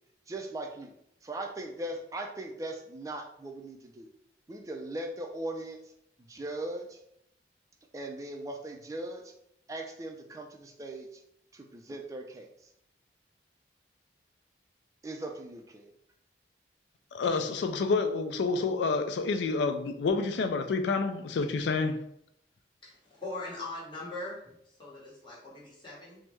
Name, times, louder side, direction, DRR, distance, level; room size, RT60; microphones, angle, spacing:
voice 1, 0.3-0.9 1.2-4.1 4.5-5.8 6.2-7.0 7.9-9.3 9.7-11.2 11.5-12.7 15.0-15.9, right 1 dB, 20° right, 0.3 m, -39 dB
voice 2, 17.1-22.0, left 4 dB, 80° left, 0.3 m, -28 dB
voice 3, 22.8-26.2, left 2 dB, 25° left, 1.1 m, -41 dB
3.4 x 2.0 x 3.0 m
head